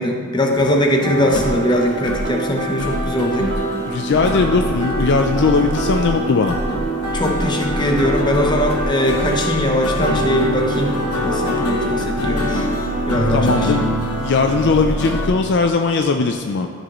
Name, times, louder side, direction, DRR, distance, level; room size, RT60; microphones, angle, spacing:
voice 1, 0.0-3.5 7.1-10.9 11.2-12.7 13.1-13.8, equal, 20° left, 1 dB, 0.8 m, -20 dB
sound 1, 0.5-15.3, left 1 dB, 90° left, 1.2 m, -25 dB
sound 2, 1.0-15.5, right 2 dB, 85° right, 1.1 m, -27 dB
voice 2, 3.9-6.6 13.3-13.8 14.2-16.7, left 4 dB, 50° left, 5 dB, 0.4 m, -18 dB
13.5 x 5.3 x 3.0 m, 2.4 s
head